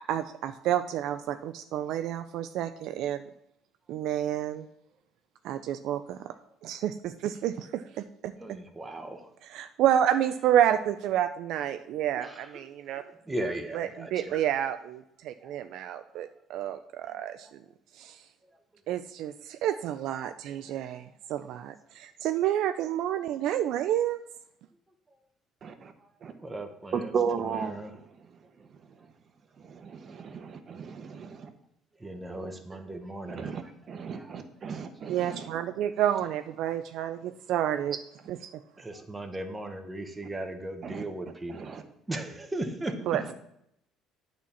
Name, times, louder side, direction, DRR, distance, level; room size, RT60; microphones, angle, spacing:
voice 1, 0.1-3.3 3.9-4.7 5.4-6.3 6.6-8.3 9.5-13.0 13.8-17.6 17.9-18.3 18.9-24.2 35.1-38.0 38.3-38.6 43.1-43.3, right 11 dB, 70° right, 0.4 m, -29 dB
voice 2, 8.4-9.3 12.2-14.5 15.4-15.6 16.1-16.3 17.0-17.5 18.4-18.8 25.1-25.2 25.8-28.0 28.4-28.7 29.0-29.1 30.9-31.0 31.9-33.7 34.1-34.4 34.7-34.8 37.3-37.4 38.7-43.0, right 1 dB, 15° right, 1.2 m, -39 dB
voice 3, 25.6-25.9 26.2-26.3 26.9-27.7 29.6-31.5 33.3-33.6 33.9-35.5 40.8-41.0 41.7-41.8, right 6 dB, 40° right, 1.1 m, -34 dB
8.7 x 4.4 x 7.1 m
cardioid pair, 110°, 0 cm